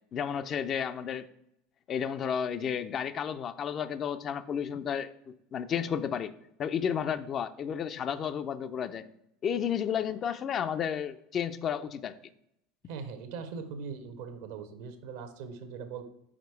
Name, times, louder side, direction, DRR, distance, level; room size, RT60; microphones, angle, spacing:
voice 1, 0.1-1.3 1.9-6.3 6.6-9.1 9.4-12.2, left 8 dB, 40° left, 11 dB, 0.4 m, -32 dB
voice 2, 12.9-16.0, right 5 dB, 65° right, 8 dB, 0.8 m, -40 dB
5.0 x 4.5 x 4.5 m, 0.77 s
hypercardioid pair, 75°, 0 cm